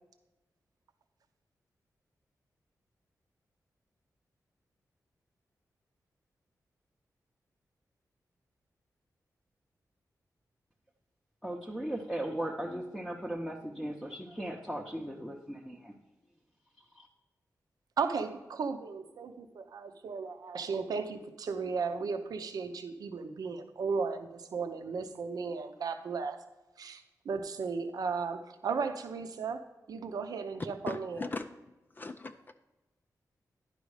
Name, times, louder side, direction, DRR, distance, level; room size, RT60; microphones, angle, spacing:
voice 1, 11.4-15.9 16.9-17.1, right 1 dB, ahead, -2 dB, 0.7 m, -37 dB
voice 2, 18.0-26.4 26.8-31.2, right 5 dB, 75° right, 8 dB, 0.7 m, -35 dB
voice 3, 30.9-32.5, left 3 dB, 30° left, 7 dB, 0.4 m, -40 dB
10.5 x 5.2 x 4.8 m, 1.1 s
wide cardioid pair, 145°, 7 cm